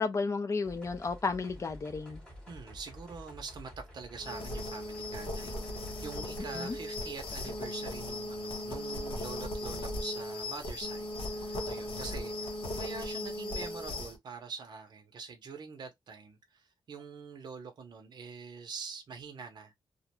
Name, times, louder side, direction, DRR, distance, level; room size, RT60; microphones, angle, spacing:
voice 1, 0.0-2.2 6.5-6.8, left 4 dB, 35° left, 0.4 m, -32 dB
sound 1, 0.6-7.7, equal, 10° left, 0.9 m, -51 dB
voice 2, 2.5-19.7, right 5 dB, 50° right, 0.6 m, -45 dB
sound 2, 4.2-14.2, left 1 dB, 80° left, 0.8 m, -37 dB
2.4 x 2.1 x 2.8 m
wide cardioid pair, 135°, 9 cm